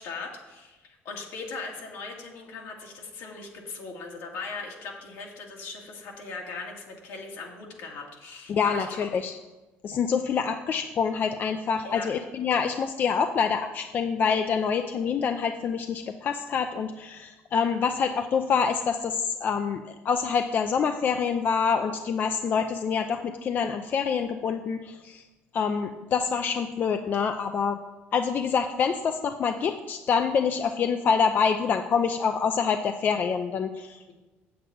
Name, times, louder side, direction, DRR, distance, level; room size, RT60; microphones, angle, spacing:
voice 1, 0.0-9.0 11.8-12.1, left 4 dB, 80° left, 0 dB, 2.0 m, -39 dB
voice 2, 8.5-9.3 9.8-25.2 25.5-27.8 28.1-34.1, left 6 dB, 40° left, 7 dB, 0.5 m, -26 dB
8.0 x 7.9 x 5.0 m, 1.1 s
cardioid pair, 120°, 5 cm